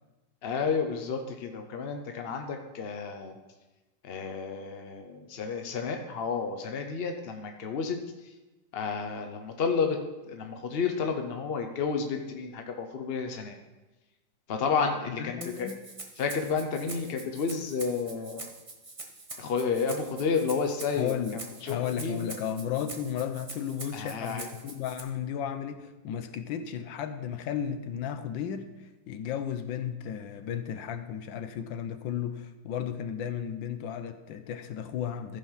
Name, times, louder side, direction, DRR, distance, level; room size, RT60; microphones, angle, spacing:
voice 1, 0.4-3.3 4.0-8.0 8.7-10.0 10.3-13.5 14.5-15.7 16.2-18.4 19.4-22.2 23.9-24.5, left 5 dB, 55° left, 4 dB, 0.6 m, -31 dB
voice 2, 15.1-15.8 20.9-21.4 21.7-35.4, left 9 dB, 90° left, 9 dB, 1.5 m, -34 dB
Rattle (instrument), 15.4-25.0, right 2 dB, 25° right, 0.8 m, -44 dB
14.5 x 5.3 x 5.6 m, 1.1 s
omnidirectional pair, 2.0 m